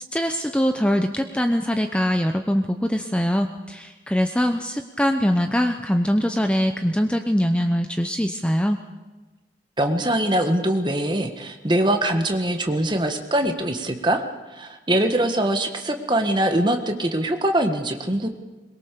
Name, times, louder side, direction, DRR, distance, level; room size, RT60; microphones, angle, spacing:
voice 1, 0.1-8.8, equal, 5° left, 6 dB, 0.7 m, -22 dB
voice 2, 9.8-14.2 14.5-18.3, right 1 dB, 25° right, 5 dB, 1.6 m, -22 dB
22.5 x 21.5 x 6.9 m, 1.2 s
head